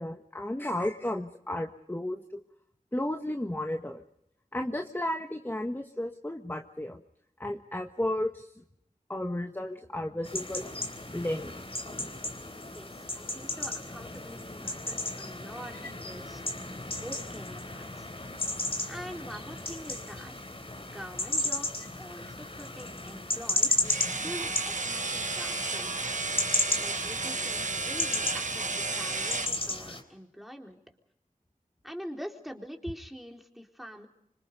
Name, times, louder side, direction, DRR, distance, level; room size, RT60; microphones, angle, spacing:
voice 1, 0.0-2.4 2.9-4.0 4.5-7.0 7.4-8.6 9.1-10.7 11.1-11.6 22.2-22.3 23.7-23.8, left 1 dB, 15° left, 4 dB, 1.5 m, -33 dB
sound 1, 10.2-30.0, left 2 dB, 40° left, 3.7 m, -34 dB
voice 2, 12.7-16.4 16.9-18.1 18.9-20.5 20.8-23.8 24.2-26.1 26.8-30.8 31.8-34.1, equal, ahead, 2 dB, 3.8 m, -44 dB
sound 2, 23.8-29.6, right 3 dB, 60° right, 1.2 m, -33 dB
26.5 x 25.5 x 5.3 m, 0.78 s
wide cardioid pair, 55°, 14 cm